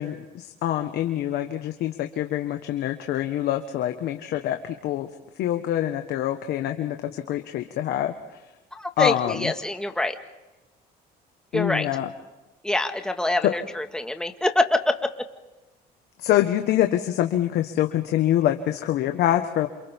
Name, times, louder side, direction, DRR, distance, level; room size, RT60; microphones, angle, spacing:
voice 1, 0.0-5.1 5.4-8.1 9.0-9.5 11.5-12.1 13.4-13.5 16.2-19.7, left 12 dB, 75° left, 6 dB, 1.4 m, -25 dB
voice 2, 8.7-10.2 11.5-11.9 12.6-15.3, left 1 dB, 5° left, 5 dB, 1.8 m, -25 dB
28.5 x 28.0 x 3.7 m, 1.0 s
cardioid pair, 110°, 17 cm